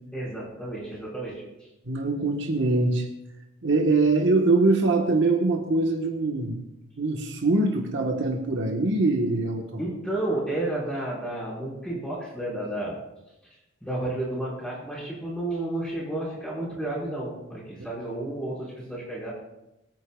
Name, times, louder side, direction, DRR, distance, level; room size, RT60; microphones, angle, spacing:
voice 1, 0.1-1.4 9.8-13.0 13.8-19.3, right 1 dB, 5° left, -6 dB, 5.2 m, -31 dB
voice 2, 1.9-3.1 3.6-6.6 7.0-9.8, right 2 dB, 60° right, 1 dB, 1.4 m, -23 dB
24.0 x 9.5 x 2.4 m, 0.93 s
head